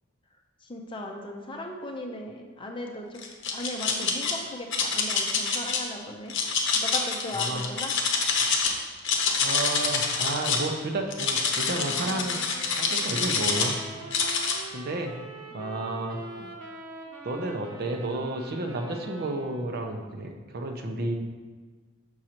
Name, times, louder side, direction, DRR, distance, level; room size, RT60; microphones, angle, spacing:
voice 1, 0.6-3.2 3.5-6.3 6.7-8.0 16.4-16.5, left 1 dB, 25° left, 2 dB, 0.6 m, -37 dB
sound 1, 3.2-4.3 4.7-5.8 6.3-8.7 9.0-10.7 11.1-13.7 14.1-14.6, left 5 dB, 60° left, 0.8 m, -26 dB
voice 2, 9.4-12.4 12.8-13.8 14.7-15.1 15.5-16.2 17.2-21.1, right 2 dB, 50° right, 3 dB, 0.6 m, -31 dB
sound 2, 11.4-19.8, right 2 dB, 90° right, 0.9 m, -44 dB
6.2 x 6.2 x 2.9 m, 1.4 s
head